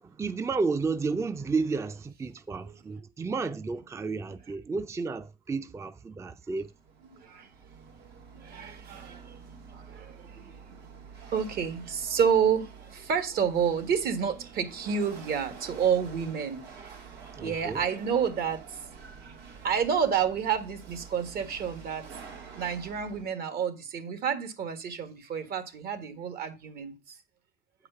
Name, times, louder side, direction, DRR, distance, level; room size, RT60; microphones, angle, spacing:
voice 1, 0.0-6.7 17.3-17.8, right 4 dB, 15° right, 0.4 m, -32 dB
Chatter / Hiss / Rattle, 6.3-23.2, right 5 dB, 90° right, 2.9 m, -48 dB
voice 2, 7.1-7.5 8.3-9.4 9.7-10.6 11.3-18.9 19.2-19.4 19.6-22.2 22.5-27.1, right 7 dB, 65° right, 1.6 m, -30 dB
8.2 x 4.9 x 5.5 m
cardioid pair, 110°, 17 cm